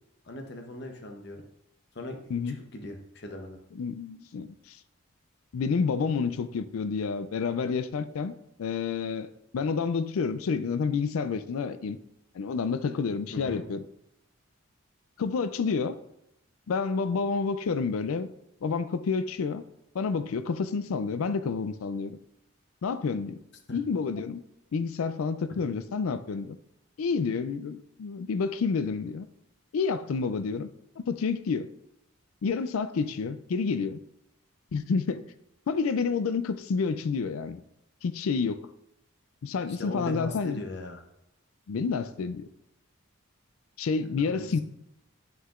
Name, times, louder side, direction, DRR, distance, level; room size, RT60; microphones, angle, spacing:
voice 1, 0.2-1.4 1.9-2.3 2.7-3.6 13.3-13.6 23.7-23.8 39.8-41.0 44.0-44.5, left 1 dB, 55° left, 3 dB, 0.9 m, -39 dB
voice 2, 3.7-4.8 5.5-8.3 8.6-9.3 9.5-12.0 12.3-13.8 15.2-16.0 16.7-18.3 18.6-19.6 19.9-22.2 22.8-23.4 23.7-24.4 24.7-26.6 27.0-29.3 29.7-30.7 31.0-31.7 32.4-34.0 34.7-35.2 35.7-37.6 38.0-38.6 39.4-40.6 41.7-42.5 43.8-44.6, left 5 dB, 85° left, 13 dB, 0.4 m, -29 dB
7.7 x 5.6 x 2.5 m, 0.81 s
head